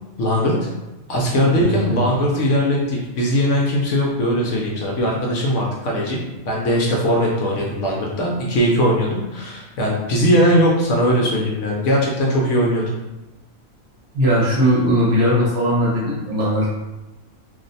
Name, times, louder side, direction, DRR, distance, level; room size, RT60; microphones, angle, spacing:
voice 1, 0.2-0.7 1.1-6.2 6.5-12.9, equal, 65° left, -2 dB, 0.8 m, -19 dB
voice 2, 1.5-2.0 14.1-16.7, equal, 55° right, -5 dB, 1.0 m, -19 dB
2.6 x 2.1 x 3.9 m, 1.0 s
omnidirectional pair, 1.5 m